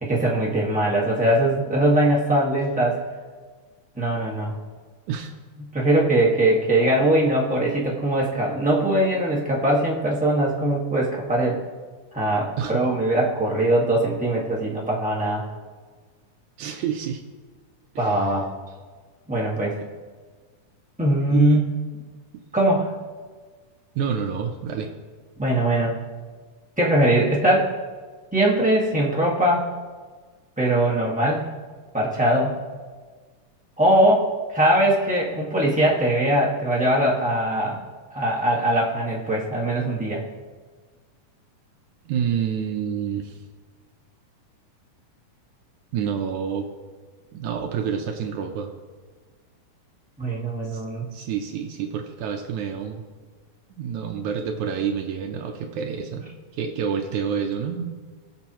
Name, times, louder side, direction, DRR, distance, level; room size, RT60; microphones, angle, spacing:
voice 1, 0.0-3.0 4.0-4.5 5.6-11.6 12.1-15.4 18.0-18.5 19.3-19.8 21.0-21.6 22.5-22.9 25.4-26.0 26.8-27.7 28.3-29.6 30.6-31.4 31.9-32.6 33.8-37.8 38.1-40.2 50.2-51.1, right 1 dB, 10° right, -6 dB, 0.3 m, -21 dB
voice 2, 16.6-17.2 18.0-18.2 21.3-21.6 24.0-24.9 42.1-43.4 45.9-46.7 47.3-48.7 50.7-50.8 51.1-53.0 53.8-56.2 56.5-58.0, right 7 dB, 75° right, 4 dB, 2.1 m, -28 dB
21.0 x 7.0 x 3.0 m, 1.5 s
omnidirectional pair, 3.5 m